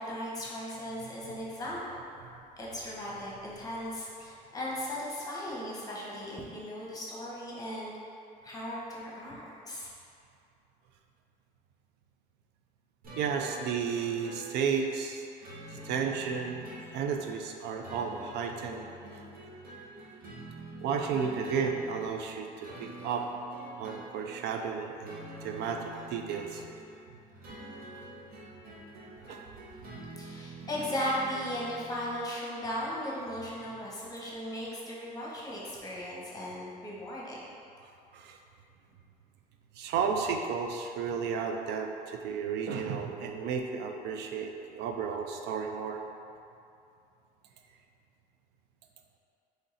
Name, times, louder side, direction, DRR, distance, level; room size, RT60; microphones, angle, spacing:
voice 1, 0.0-2.0 2.6-7.9 8.4-9.9 30.2-37.4, equal, 20° left, -5 dB, 1.1 m, -37 dB
sound 1, 13.0-32.2, right 2 dB, 55° right, 1.1 m, -47 dB
voice 2, 13.2-15.3 15.7-16.6 16.9-18.8 19.1-19.2 20.8-23.3 23.8-26.6 29.3-29.4 38.1-38.4 39.8-46.0, right 6 dB, 75° right, 3 dB, 0.5 m, -33 dB
3.8 x 3.2 x 4.0 m, 2.6 s
cardioid pair, 95°, 17 cm